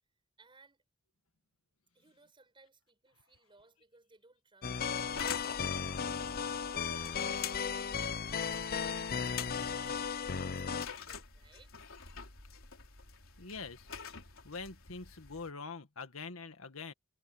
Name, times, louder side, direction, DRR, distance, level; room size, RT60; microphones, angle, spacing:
voice 1, 0.4-0.8 1.9-5.9 6.6-10.1 10.4-11.7, right 3 dB, 25° right, 7.7 m, -63 dB
sound 1, 4.6-10.9, left 6 dB, 45° left, 0.7 m, -35 dB
sound 2, 5.1-15.5, left 7 dB, 70° left, 3.7 m, -47 dB
voice 2, 13.4-13.9 14.4-16.9, left 4 dB, 85° left, 1.8 m, -44 dB
head